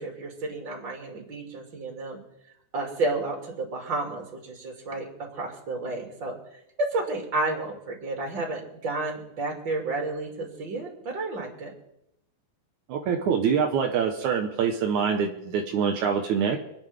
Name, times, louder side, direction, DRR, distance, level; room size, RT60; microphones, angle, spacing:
voice 1, 0.0-2.2 2.7-6.3 6.8-11.7, right 2 dB, 30° right, 0 dB, 3.0 m, -31 dB
voice 2, 12.9-16.6, right 6 dB, 80° right, 2 dB, 1.7 m, -25 dB
28.0 x 9.6 x 3.7 m, 0.81 s
omnidirectional pair, 5.1 m